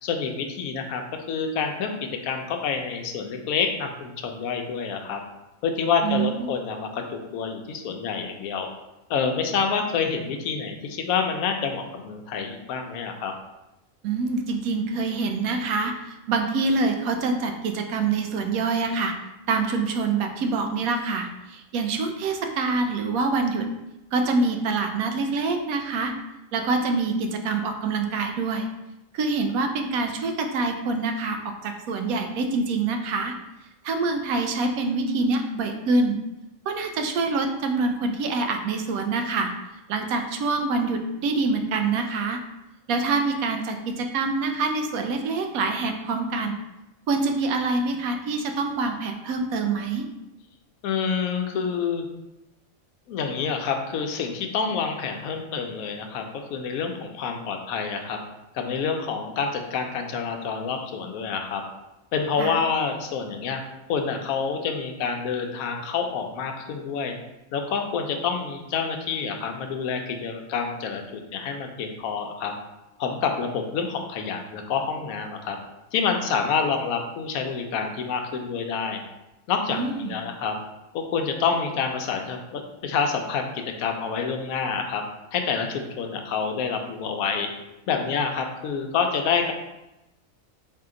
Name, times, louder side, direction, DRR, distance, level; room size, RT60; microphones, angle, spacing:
voice 1, 0.0-1.0 1.3-5.2 5.6-8.7 9.1-13.3 50.8-52.0 53.1-58.2 58.5-61.6 62.1-63.6 63.9-67.2 67.5-72.5 73.0-75.6 75.9-79.0 79.5-79.8 80.1-80.6 80.9-85.0 85.3-87.5 87.9-89.5, left 6 dB, 85° left, 4 dB, 1.0 m, -27 dB
voice 2, 6.0-6.4 14.0-19.1 19.5-23.7 24.1-26.1 26.5-28.7 29.1-33.4 33.8-36.2 36.7-39.5 39.9-42.4 42.9-46.6 47.1-50.1 62.4-62.6 79.7-80.1, right 3 dB, 90° right, 5 dB, 1.0 m, -25 dB
4.1 x 2.8 x 3.7 m, 0.96 s
omnidirectional pair, 1.4 m